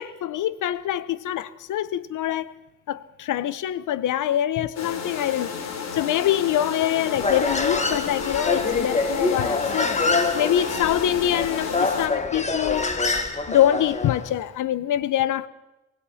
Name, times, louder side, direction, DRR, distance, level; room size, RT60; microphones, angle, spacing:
voice 1, 0.0-2.5 2.9-5.5 5.9-10.0 10.3-12.9 13.5-15.5, left 11 dB, 90° left, 1.1 m, -24 dB
sound 1, 4.8-12.1, left 5 dB, 60° left, 4.1 m, -31 dB
Human voice, 7.2-14.3, left 3 dB, 25° left, 2.2 m, -26 dB
25.0 x 19.0 x 5.8 m
cardioid pair, 115°, 30 cm